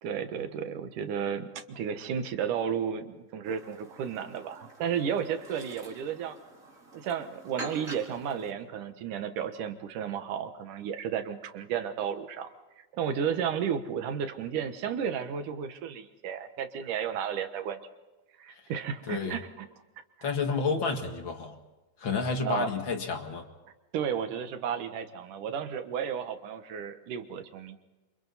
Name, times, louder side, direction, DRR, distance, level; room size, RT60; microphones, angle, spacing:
voice 1, 0.0-6.4 6.9-17.8 18.4-19.5 22.4-22.7 23.9-27.8, right 8 dB, 70° right, 8 dB, 2.8 m, -33 dB
Chirp tweet, 3.4-8.5, right 2 dB, 25° right, 4.4 m, -46 dB
voice 2, 19.1-19.4 20.2-21.6 22.0-23.5, left 4 dB, 40° left, 4 dB, 2.2 m, -30 dB
28.0 x 27.5 x 4.2 m, 1.1 s
omnidirectional pair, 3.8 m